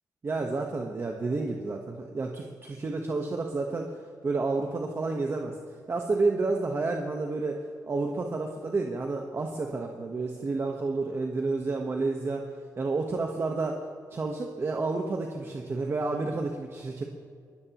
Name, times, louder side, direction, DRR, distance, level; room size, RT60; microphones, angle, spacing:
voice 1, 0.2-3.9 4.2-5.6 5.9-12.5 12.8-13.9 14.1-17.0, right 3 dB, 35° right, 2 dB, 1.2 m, -30 dB
22.5 x 17.0 x 3.1 m, 2.1 s
cardioid pair, 115°, 7 cm